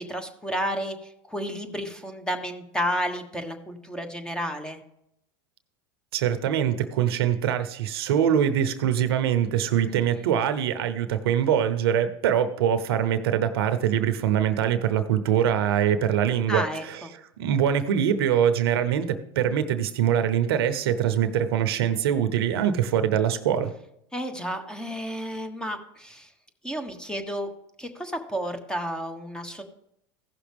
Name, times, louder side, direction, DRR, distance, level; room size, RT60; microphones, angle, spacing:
voice 1, 0.0-4.8 9.8-10.3 16.5-17.1 24.1-26.3 26.6-27.5 27.8-29.6, equal, 5° left, 6 dB, 1.2 m, -32 dB
voice 2, 6.1-16.6 16.9-17.0 17.4-23.7, right 9 dB, 80° right, 11 dB, 0.8 m, -23 dB
15.5 x 6.0 x 3.5 m, 0.78 s
hypercardioid pair, 100°, 13 cm